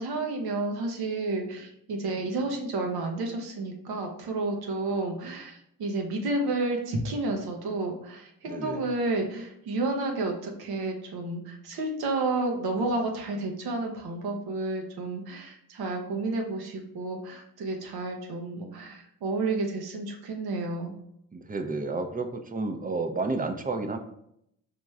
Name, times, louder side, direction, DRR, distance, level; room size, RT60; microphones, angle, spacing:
voice 1, 0.0-20.9, right 2 dB, 85° right, 2 dB, 0.8 m, -31 dB
voice 2, 8.5-8.8 21.3-24.0, right 3 dB, 25° right, 7 dB, 0.5 m, -31 dB
4.8 x 3.0 x 2.3 m, 0.75 s
supercardioid pair, 45°, 37 cm